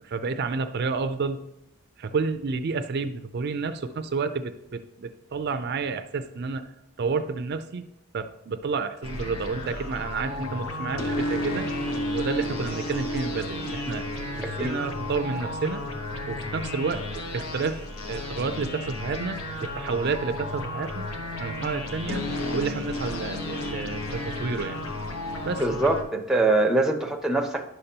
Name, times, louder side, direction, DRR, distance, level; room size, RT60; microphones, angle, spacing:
voice 1, 0.0-1.4 2.0-6.7 7.0-7.9 8.1-11.7 12.1-14.1 14.4-15.8 16.3-21.1 21.4-22.2 22.5-24.8 25.4-25.6, right 4 dB, 50° right, 10 dB, 0.4 m, -30 dB
sound 1, 9.0-26.0, left 1 dB, 80° left, 1.1 m, -32 dB
voice 2, 14.4-14.8 25.6-27.7, right 2 dB, ahead, 4 dB, 0.6 m, -23 dB
10.5 x 6.6 x 2.8 m, 0.84 s
head